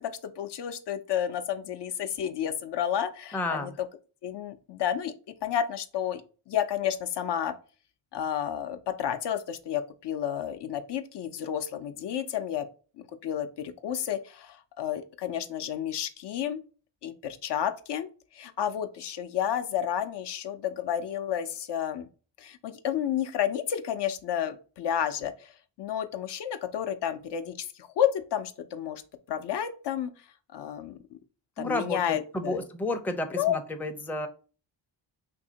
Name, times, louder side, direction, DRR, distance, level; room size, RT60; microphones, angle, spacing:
voice 1, 0.0-3.7 4.2-5.1 5.4-6.2 6.5-7.5 8.1-12.7 13.2-16.6 17.0-18.1 18.3-22.1 22.4-25.5 25.8-29.0 29.3-30.1 30.5-31.0 31.6-32.6 33.3-33.6, left 9 dB, 65° left, 8 dB, 0.5 m, -31 dB
voice 2, 3.3-3.7 31.6-34.3, left 2 dB, 5° left, 6 dB, 0.4 m, -31 dB
2.8 x 2.6 x 3.8 m, 0.37 s
cardioid pair, 70°, 44 cm